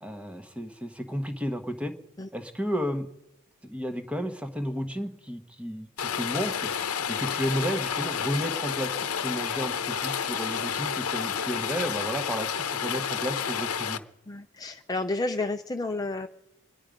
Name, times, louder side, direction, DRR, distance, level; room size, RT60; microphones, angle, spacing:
voice 1, 0.0-1.9 2.3-3.1 3.6-6.7 7.1-8.9 9.2-14.0, equal, 5° right, 7 dB, 1.1 m, -32 dB
Rain, 6.0-14.0, left 7 dB, 80° left, 0.8 m, -30 dB
sound 1, 6.0-12.4, right 2 dB, 80° right, 4.1 m, -60 dB
voice 2, 14.3-16.3, left 2 dB, 15° left, 5 dB, 0.5 m, -31 dB
25.0 x 10.5 x 5.1 m, 0.90 s
head